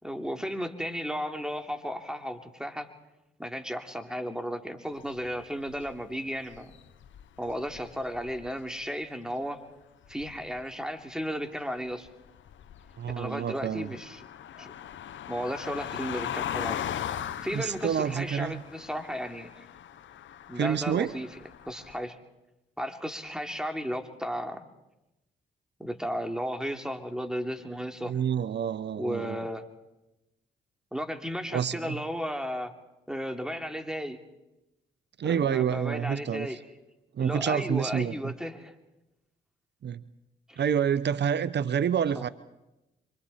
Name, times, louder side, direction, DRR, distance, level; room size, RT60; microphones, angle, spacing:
voice 1, 0.0-2.9 3.4-6.7 7.4-9.6 10.1-12.1 13.2-14.2 14.6-14.7 15.3-16.9 17.4-19.7 20.5-21.3 21.7-22.2 22.8-24.6 25.8-28.2 29.0-29.6 30.9-32.7 33.1-34.2 35.2-36.6 37.2-38.7 40.5-40.6 42.1-42.2, equal, 5° right, 5 dB, 2.9 m, -34 dB
sound 1, 5.0-6.1 6.5-8.6 10.0-10.7 11.9-22.0, left 10 dB, 75° left, 0.9 m, -39 dB
voice 2, 13.0-13.9 17.5-18.6 20.6-21.1 28.1-29.4 31.5-32.0 35.2-36.6 37.1-38.3 39.8-40.0 40.6-42.3, right 8 dB, 60° right, 16 dB, 0.8 m, -28 dB
27.0 x 24.5 x 4.2 m, 0.96 s
supercardioid pair, 45°, 20 cm